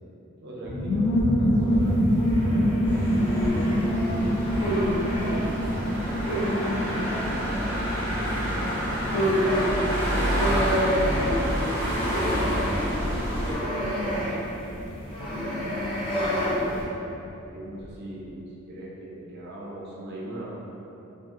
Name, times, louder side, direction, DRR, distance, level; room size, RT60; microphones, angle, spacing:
voice 1, 0.4-3.1 3.5-4.7 5.1-5.6 9.9-14.2 15.2-15.8 17.4-20.6, right 1 dB, 55° right, -5 dB, 0.6 m, -40 dB
sound 1, 0.6-16.9 17.2-17.3 17.5-17.9, equal, 55° left, 0.6 m, -28 dB
sound 2, 1.8-5.4 6.1-7.3 8.6-8.7 8.9-16.8, equal, 25° left, 0.8 m, -29 dB
sound 3, 2.8-13.5, equal, 10° left, 1.2 m, -29 dB
voice 2, 6.7-8.9 15.4-15.8 16.1-16.9, equal, 70° left, -10 dB, 1.1 m, -41 dB
2.6 x 2.5 x 3.6 m, 2.9 s
head